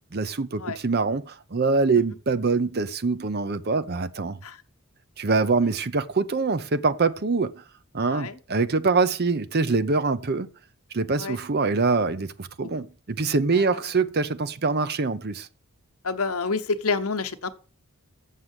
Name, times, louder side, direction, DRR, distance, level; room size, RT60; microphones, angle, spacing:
voice 1, 0.1-4.4 5.2-7.5 7.9-10.5 10.9-15.5, right 4 dB, 45° right, 0.7 m, -24 dB
voice 2, 13.5-13.9 16.0-17.5, left 4 dB, 80° left, 1.0 m, -29 dB
7.4 x 6.5 x 8.0 m
head